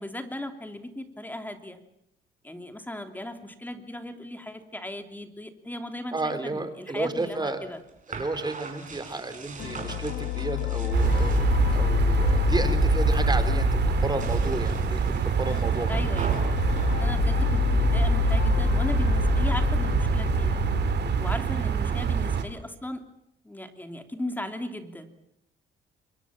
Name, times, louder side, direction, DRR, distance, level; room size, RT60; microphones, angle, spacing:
voice 1, 0.0-1.8 2.4-7.8 15.9-16.4 17.0-20.6 21.2-23.1 23.4-25.1, left 1 dB, 10° left, 6 dB, 3.0 m, -37 dB
voice 2, 6.1-7.6 8.1-16.0, right 2 dB, 20° right, 10 dB, 3.8 m, -32 dB
sound 1, 7.0-11.9 12.2-12.8 13.1-13.6 14.1-17.9, right 4 dB, 40° right, 5.5 m, -42 dB
sound 2, 9.6-21.3, left 9 dB, 85° left, 1.5 m, -27 dB
sound 3, 10.9-22.4, right 7 dB, 60° right, 2.7 m, -25 dB
26.5 x 22.0 x 7.5 m, 0.78 s
cardioid pair, 90°, 20 cm